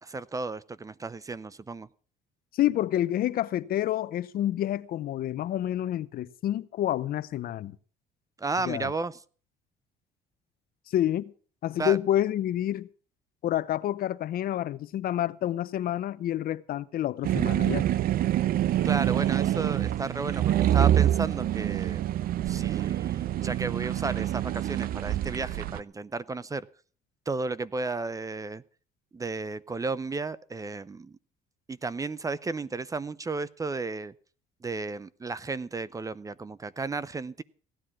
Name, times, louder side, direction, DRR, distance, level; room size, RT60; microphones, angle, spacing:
voice 1, 0.0-1.9 8.4-9.2 11.8-12.0 18.8-22.1 22.5-26.7 27.3-28.6 29.1-31.2 31.7-34.1 34.6-37.4, right 3 dB, 20° right, 0.6 m, -33 dB
voice 2, 2.5-7.8 8.6-8.9 10.9-11.3 11.6-12.9 13.4-17.8, left 12 dB, 60° left, 0.7 m, -28 dB
sound 1, 17.2-25.8, right 12 dB, 60° right, 0.6 m, -26 dB
16.5 x 10.0 x 6.0 m
cardioid pair, 110°, 17 cm